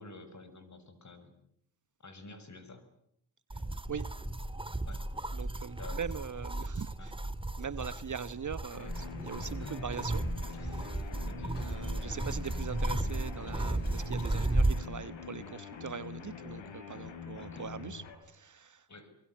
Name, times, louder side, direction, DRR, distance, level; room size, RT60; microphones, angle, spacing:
voice 1, 0.0-1.4 2.0-2.8 4.9-5.0 5.8-6.0 6.6-7.1 9.6-9.8 11.3-11.6 17.4-17.7 18.9-19.1, left 2 dB, 35° left, 7.3 m, -50 dB
sound 1, 3.5-14.9, right 2 dB, 10° right, 2.1 m, -34 dB
voice 2, 5.3-7.1 7.6-11.1 11.6-18.9, right 7 dB, 40° right, 1.3 m, -42 dB
sound 2, 8.7-18.1, left 7 dB, 65° left, 5.4 m, -45 dB
Human voice / Cough, 9.9-10.1 10.5-11.0 11.5-14.4 15.1-16.0 16.7-16.8 17.5-17.9, left 8 dB, 85° left, 6.0 m, -63 dB
24.5 x 24.0 x 9.9 m
supercardioid pair, 60°, 47 cm